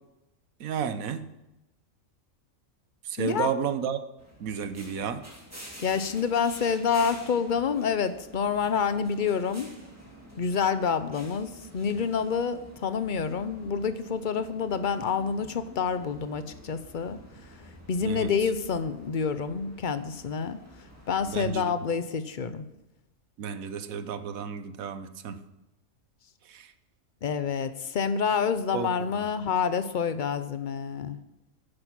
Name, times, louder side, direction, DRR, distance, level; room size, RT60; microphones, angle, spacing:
voice 1, 0.6-1.3 3.0-4.0 4.4-5.2 18.0-18.3 21.2-21.7 23.4-25.4 26.5-26.7 28.7-29.2, right 7 dB, 85° right, 11 dB, 1.3 m, -32 dB
voice 2, 3.2-3.5 5.8-9.7 10.4-17.2 17.9-20.6 21.1-22.6 27.2-31.2, left 6 dB, 45° left, 12 dB, 0.7 m, -28 dB
sound 1, 4.2-21.5, equal, 10° right, 2.5 m, -49 dB
10.5 x 9.8 x 6.0 m, 0.94 s
omnidirectional pair, 1.4 m